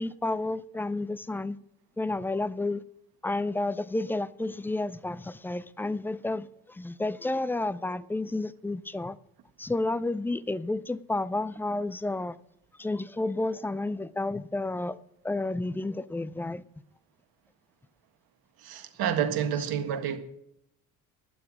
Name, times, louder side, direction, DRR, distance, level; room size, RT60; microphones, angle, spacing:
voice 1, 0.0-1.6 2.0-2.8 3.2-9.2 9.6-12.4 12.8-15.0 15.2-16.6, left 2 dB, 5° left, 0.4 m, -31 dB
voice 2, 18.6-20.2, right 9 dB, 55° right, 1.8 m, -29 dB
12.0 x 9.4 x 6.2 m
figure-of-eight pair, 55°, 45 cm